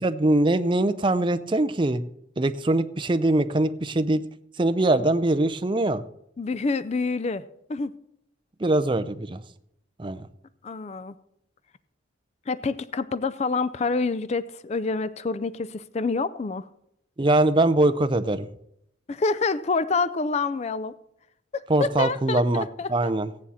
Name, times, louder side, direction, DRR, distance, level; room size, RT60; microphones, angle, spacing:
voice 1, 0.0-2.0 2.4-4.2 4.6-6.0 8.6-9.4 10.0-10.3 17.2-18.5 21.7-23.3, right 2 dB, 25° right, 12 dB, 0.5 m, -22 dB
voice 2, 6.4-7.4 7.7-7.9 10.6-11.1 12.5-16.6 19.1-20.9 21.5-23.1, left 4 dB, 35° left, 15 dB, 0.4 m, -27 dB
15.5 x 9.5 x 4.2 m, 0.78 s
head